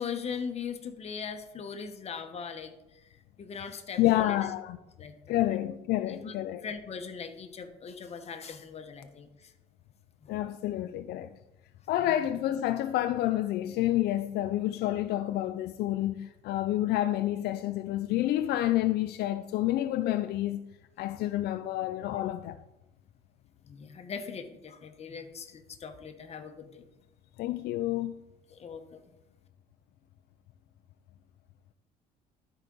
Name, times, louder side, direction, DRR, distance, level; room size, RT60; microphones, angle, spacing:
voice 1, 0.0-2.7 3.4-4.5 5.0-5.6 6.1-6.3 6.6-9.5 10.2-10.3 12.0-12.2 21.1-21.2 23.7-26.8 28.5-29.0, left 6 dB, 40° left, 1.0 m, -40 dB
voice 2, 4.0-4.8 5.3-6.7 10.3-11.4 11.9-20.6 21.0-22.6 27.4-28.2, left 14 dB, 75° left, 0.4 m, -29 dB
12.0 x 4.9 x 3.9 m
cardioid pair, 110°, 17 cm